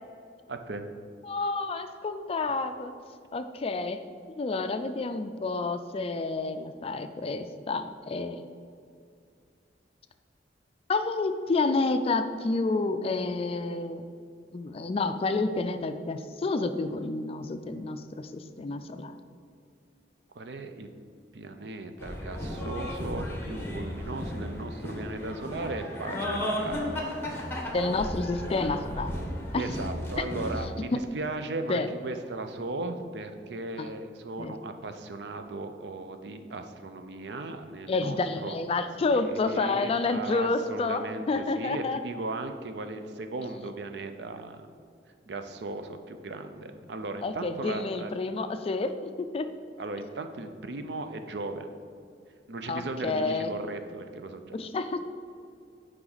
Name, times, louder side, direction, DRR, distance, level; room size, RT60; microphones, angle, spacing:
voice 1, 0.5-0.9 20.4-20.9 21.3-26.9 29.5-38.6 39.1-44.7 45.3-48.1 49.8-51.7 52.5-54.6, right 2 dB, 65° right, 7 dB, 0.5 m, -37 dB
voice 2, 1.2-2.9 3.3-4.0 4.4-8.4 10.9-14.0 14.5-19.2 27.7-29.2 29.5-29.7 30.2-30.3 30.9-31.0 31.7-31.9 33.8-33.9 34.4-34.6 37.9-42.0 47.2-49.5 52.7-53.5 54.5-55.1, left 3 dB, 35° left, 9 dB, 0.3 m, -29 dB
sound 1, 22.0-30.7, left 1 dB, 15° left, 1.1 m, -34 dB
8.8 x 4.8 x 4.0 m, 2.3 s
head